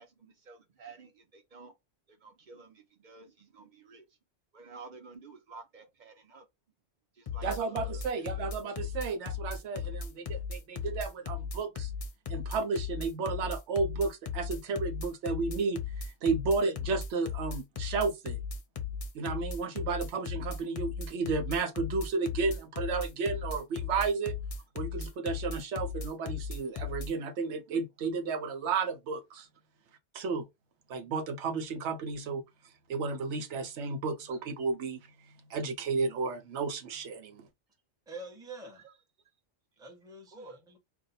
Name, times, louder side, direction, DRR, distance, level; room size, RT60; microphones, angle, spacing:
voice 1, 0.0-1.8 2.1-4.0 4.5-6.5 7.1-8.5 33.8-33.9 38.8-38.9 40.3-40.6, right 4 dB, 45° right, 0.8 m, -51 dB
sound 1, 7.3-27.1, left 6 dB, 50° left, 0.4 m, -36 dB
voice 2, 7.4-11.9 12.3-18.4 19.1-24.4 24.7-29.5 30.1-30.4 30.9-32.4 32.9-37.5, right 4 dB, 80° right, 0.9 m, -33 dB
voice 3, 38.1-38.8 39.8-40.8, right 2 dB, 5° right, 0.7 m, -46 dB
2.5 x 2.2 x 4.0 m
omnidirectional pair, 1.2 m